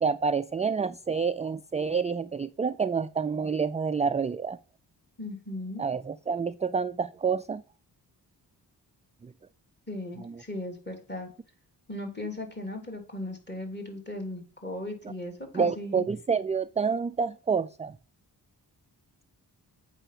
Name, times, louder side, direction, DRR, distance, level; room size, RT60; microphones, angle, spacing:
voice 1, 0.0-4.6 5.8-7.6 9.2-9.3 10.2-10.4 15.5-17.9, right 5 dB, 20° right, 13 dB, 0.3 m, -28 dB
voice 2, 5.2-5.8 9.9-11.3 11.9-16.0, left 1 dB, 25° left, 2 dB, 3.2 m, -37 dB
8.0 x 5.6 x 5.8 m, 0.38 s
cardioid pair, 55°, 41 cm